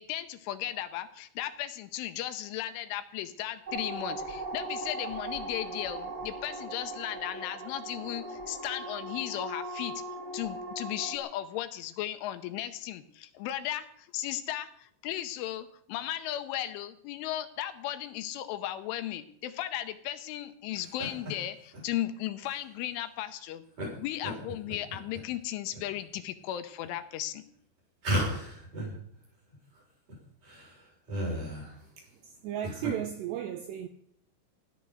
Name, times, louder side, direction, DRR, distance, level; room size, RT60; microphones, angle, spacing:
voice 1, 0.0-9.9 10.3-23.6 23.9-27.4, left 12 dB, 80° left, 3.2 m, -36 dB
sound 1, 3.7-11.2, right 2 dB, 55° right, 0.5 m, -39 dB
sound 2, 20.7-21.3 21.7-21.8 22.4-22.6 23.8-23.9 24.2-25.2 25.7-26.2 26.8-26.9 28.0-29.0 29.2-29.3 29.5-29.6 30.1-30.2 30.4-31.8 32.4-32.9, equal, 40° right, 8.5 m, -34 dB
voice 2, 32.0-33.9, right 11 dB, 85° right, 2.5 m, -35 dB
16.5 x 11.5 x 6.4 m
omnidirectional pair, 5.8 m